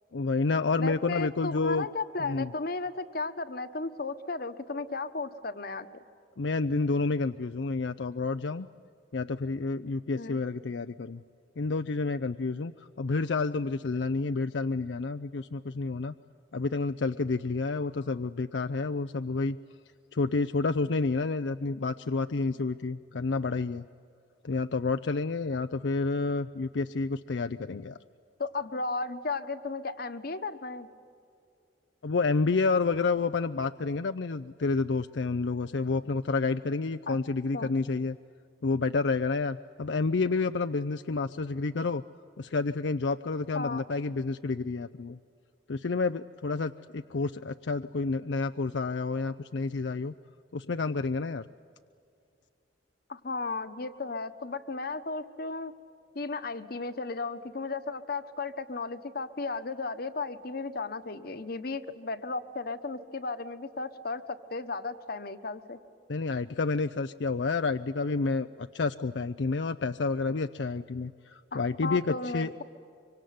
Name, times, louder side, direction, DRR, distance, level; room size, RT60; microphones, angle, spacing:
voice 1, 0.1-1.9 2.2-2.5 6.4-8.7 9.1-11.2 11.6-12.7 13.0-16.1 16.5-19.6 20.1-23.8 24.4-28.0 32.0-38.2 38.6-42.0 42.4-45.2 45.7-50.1 50.5-51.4 66.1-72.6, left 3 dB, 85° left, 9 dB, 0.6 m, -29 dB
voice 2, 0.8-5.9 10.1-10.4 28.4-30.9 37.1-37.2 37.5-37.7 43.5-43.8 53.1-55.7 56.1-65.8 71.5-72.6, left 3 dB, 60° left, 10 dB, 1.3 m, -35 dB
24.5 x 24.5 x 9.6 m, 2.4 s
head